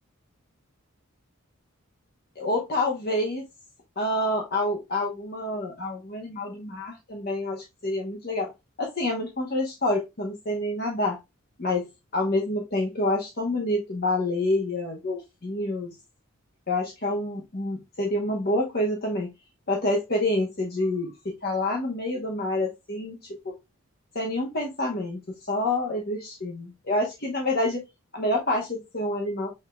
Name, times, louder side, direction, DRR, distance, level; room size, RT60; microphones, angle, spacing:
voice 1, 2.4-3.4 4.0-8.5 8.8-11.2 11.6-11.9 12.1-16.0 16.7-19.3 19.7-21.1 21.4-23.5 24.1-25.2 25.5-27.8 28.1-29.5, left 1 dB, 45° left, 0.9 m, -27 dB
6.6 x 3.6 x 2.2 m
head